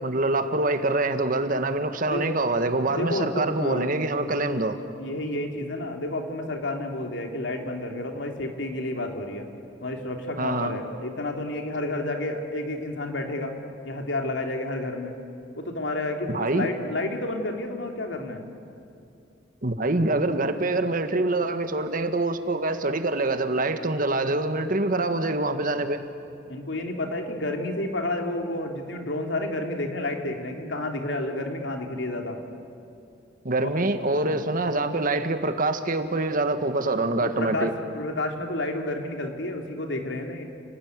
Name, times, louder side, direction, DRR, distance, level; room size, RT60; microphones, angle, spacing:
voice 1, 0.0-4.8 10.4-10.8 16.3-16.7 19.6-26.0 33.4-37.7, right 2 dB, 50° right, 8 dB, 1.5 m, -25 dB
voice 2, 2.0-2.4 2.9-3.9 4.4-4.5 5.0-9.5 9.8-13.5 13.8-15.2 15.6-18.5 26.5-32.4 33.6-33.8 34.3-34.4 37.2-40.4, left 1 dB, 90° left, 3 dB, 3.0 m, -30 dB
29.5 x 19.0 x 9.6 m, 2.5 s
head